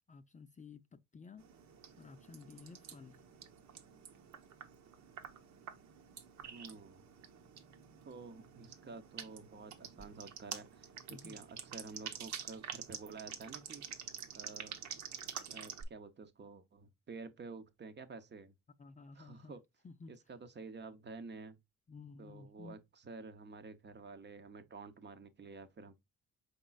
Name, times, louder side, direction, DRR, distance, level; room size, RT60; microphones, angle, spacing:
voice 1, 0.0-1.5 2.0-3.3 11.1-11.4 18.8-19.5 19.8-20.1 21.9-22.8, left 4 dB, 25° left, 0.4 m, -53 dB
sound 1, 1.4-15.8, right 8 dB, 70° right, 0.9 m, -48 dB
voice 2, 6.5-7.1 8.0-13.8 14.3-14.8 15.5-18.5 19.2-19.6 20.1-21.6 22.2-26.0, right 4 dB, 35° right, 0.8 m, -50 dB
5.1 x 4.1 x 2.3 m
cardioid pair, 90°, 30 cm